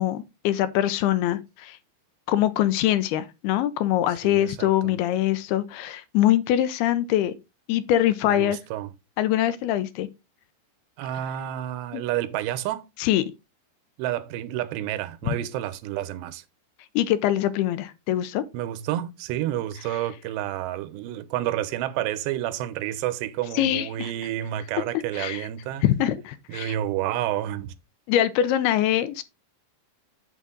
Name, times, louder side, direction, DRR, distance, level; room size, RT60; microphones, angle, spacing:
voice 1, 0.0-1.8 2.3-7.3 7.7-8.6 9.2-10.1 11.9-12.0 13.0-13.2 15.3-15.4 17.0-18.4 23.5-24.1 25.1-25.5 25.8-26.8 28.1-29.2, left 12 dB, 80° left, 2.5 m, -23 dB
voice 2, 4.2-5.0 8.3-8.9 11.0-12.9 14.0-16.4 18.5-25.8 26.5-27.7, right 12 dB, 90° right, 3.0 m, -30 dB
7.9 x 7.6 x 3.8 m
omnidirectional pair, 4.8 m